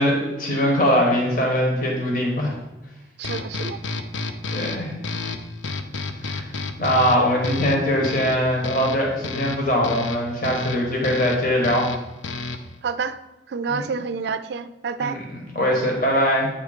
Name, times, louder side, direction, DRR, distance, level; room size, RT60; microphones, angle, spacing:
voice 1, 0.0-2.5 4.5-5.0 6.2-6.5 6.8-11.9 13.7-13.8 15.0-16.5, equal, 50° left, 0 dB, 1.3 m, -22 dB
sound 1, 3.2-12.8, left 3 dB, 90° left, 0.5 m, -31 dB
voice 2, 3.2-3.8 12.8-13.2 13.5-15.2, right 5 dB, 60° right, 12 dB, 0.3 m, -28 dB
8.7 x 3.1 x 4.9 m, 1.0 s
head